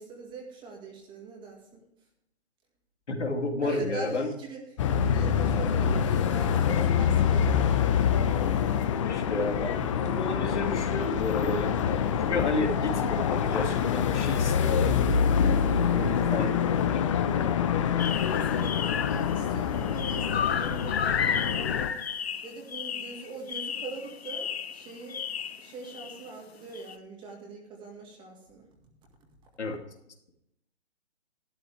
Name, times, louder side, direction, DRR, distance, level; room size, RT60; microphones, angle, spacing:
voice 1, 0.0-1.8 3.6-4.6 4.9-8.0 15.8-16.1 18.3-21.7 22.4-25.2 25.6-28.7, right 3 dB, 15° right, 2 dB, 1.9 m, -42 dB
voice 2, 3.1-4.3 9.0-11.8 12.2-15.0 15.9-17.0 29.6-29.8, left 2 dB, 80° left, 3 dB, 2.7 m, -31 dB
sound 1, 4.8-21.9, left 7 dB, 30° left, 0.8 m, -26 dB
sound 2, 18.0-19.5 19.7-26.3 26.7-26.9, left 7 dB, 65° left, 0.9 m, -33 dB
12.5 x 12.0 x 3.3 m, 0.79 s
hypercardioid pair, 150°, 34 cm